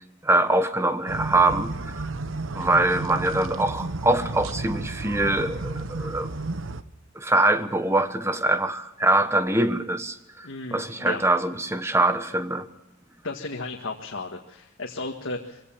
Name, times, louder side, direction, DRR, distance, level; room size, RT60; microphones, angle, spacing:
voice 1, 0.2-2.0 2.5-6.3 7.1-12.7, right 2 dB, 15° right, 9 dB, 1.2 m, -23 dB
sound 1, 1.1-6.8, right 2 dB, 75° right, 1.0 m, -32 dB
voice 2, 10.4-11.2 13.2-15.6, left 2 dB, 75° left, 1 dB, 1.8 m, -34 dB
22.5 x 16.5 x 7.2 m, 0.91 s
head